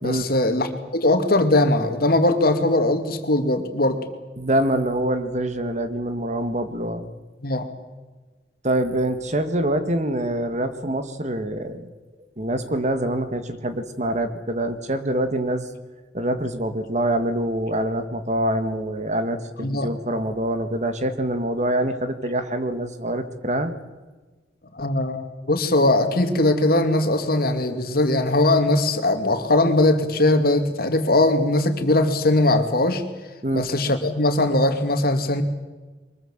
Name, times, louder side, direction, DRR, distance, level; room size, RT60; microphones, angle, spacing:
voice 1, 0.0-4.0 7.4-7.7 19.6-19.9 24.8-33.0 33.5-35.4, left 2 dB, 60° left, 7 dB, 2.5 m, -20 dB
voice 2, 4.4-7.1 8.6-11.9 12.4-15.7 16.1-23.8 33.4-33.7, right 1 dB, 40° right, 9 dB, 1.8 m, -25 dB
23.5 x 21.5 x 7.5 m, 1.3 s
head